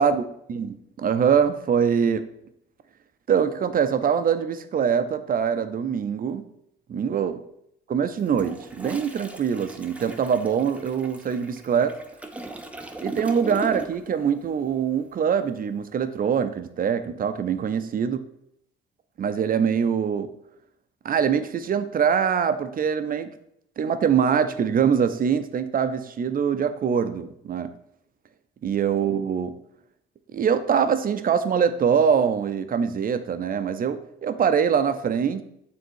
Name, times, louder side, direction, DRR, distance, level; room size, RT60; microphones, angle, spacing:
voice 1, 0.5-2.3 3.3-6.4 6.9-7.4 7.9-12.0 13.0-18.2 19.2-20.3 21.0-23.3 23.8-27.7 28.6-29.5 30.3-35.4, right 7 dB, 45° right, 10 dB, 0.6 m, -23 dB
Toilet flush, 8.2-14.2 14.4-14.7, right 2 dB, 5° right, 0.7 m, -38 dB
6.7 x 3.6 x 4.6 m, 0.76 s
cardioid pair, 90°, 20 cm